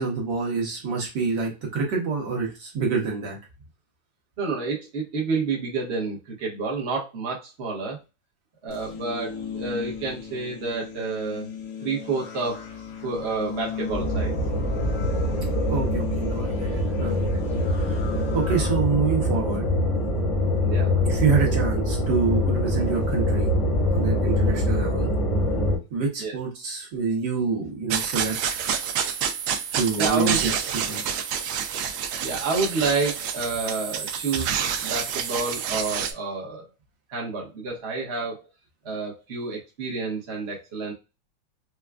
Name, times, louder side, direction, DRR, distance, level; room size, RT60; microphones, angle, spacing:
voice 1, 0.0-3.4 15.7-17.3 17.7-19.7 21.1-23.5 23.9-25.1 25.9-28.6 29.7-31.0, right 5 dB, 65° right, -2 dB, 1.6 m, -27 dB
voice 2, 4.4-8.0 8.6-11.5 11.8-12.7 13.0-14.3 20.6-20.9 24.3-24.5 26.2-26.4 30.0-30.4 32.2-34.5 34.8-36.7 37.1-38.5 38.8-40.9, right 4 dB, 45° right, -2 dB, 1.0 m, -29 dB
sound 1, 8.7-18.7, left 7 dB, 65° left, 1.0 m, -36 dB
sound 2, 13.9-25.8, left 1 dB, 25° left, 0.9 m, -24 dB
sound 3, 27.9-36.1, right 7 dB, 80° right, 1.3 m, -28 dB
4.6 x 2.2 x 2.3 m, 0.27 s
omnidirectional pair, 2.1 m